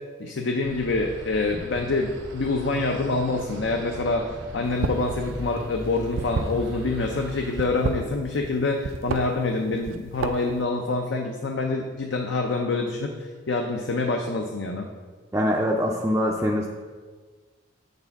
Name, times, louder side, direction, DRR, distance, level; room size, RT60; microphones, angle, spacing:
voice 1, 0.2-4.3 4.5-14.9, left 3 dB, 65° left, 3 dB, 0.5 m, -26 dB
sound 1, 0.6-7.7, right 1 dB, 70° right, 0.9 m, -38 dB
sound 2, 4.7-5.1 5.4-7.0 7.5-8.5 8.8-9.2 9.7-10.6, right 4 dB, 85° right, 0.5 m, -29 dB
voice 2, 15.3-16.7, equal, 10° right, -3 dB, 0.4 m, -23 dB
8.0 x 6.7 x 3.5 m, 1.5 s
head